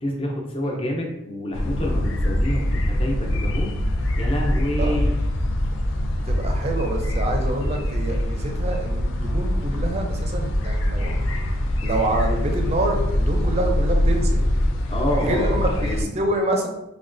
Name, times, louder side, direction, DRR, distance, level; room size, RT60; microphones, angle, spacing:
voice 1, 0.0-3.7 4.2-5.1 14.9-16.1, left 1 dB, 25° left, 0 dB, 0.6 m, -27 dB
sound 1, 1.5-16.0, left 1 dB, 75° left, 0.4 m, -23 dB
voice 2, 6.3-11.2 11.8-14.4 15.2-16.7, right 1 dB, 30° right, 2 dB, 0.5 m, -27 dB
5.0 x 2.2 x 2.5 m, 0.96 s
head